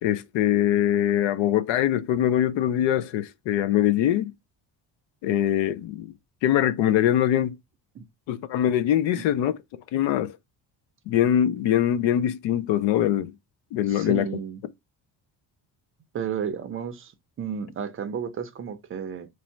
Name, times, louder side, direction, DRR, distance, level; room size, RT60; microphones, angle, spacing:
voice 1, 0.0-4.3 5.2-6.1 6.4-7.6 8.3-10.3 11.1-13.3 13.7-14.3, left 11 dB, 85° left, 0.6 m, -23 dB
voice 2, 13.9-14.6 16.1-17.1 17.4-19.3, right 7 dB, 30° right, 0.4 m, -32 dB
3.2 x 2.6 x 4.4 m
cardioid pair, 175°, 44 cm